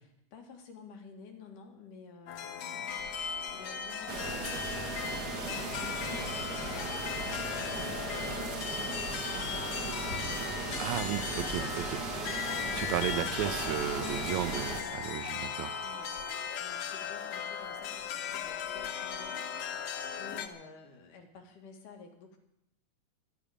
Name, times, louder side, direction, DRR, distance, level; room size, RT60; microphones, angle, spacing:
voice 1, 0.0-10.6 11.5-13.0 13.9-15.3 15.8-16.1 16.6-19.4 19.7-22.4, left 4 dB, 85° left, 3 dB, 3.5 m, -51 dB
sound 1, 2.3-20.5, left 7 dB, 65° left, 2.1 m, -37 dB
sound 2, 4.1-14.8, right 4 dB, 45° right, 1.5 m, -37 dB
voice 2, 10.8-12.0 12.8-14.7 15.0-15.7, right 12 dB, 75° right, 12 dB, 2.0 m, -34 dB
24.5 x 10.5 x 5.1 m, 0.84 s
omnidirectional pair, 3.6 m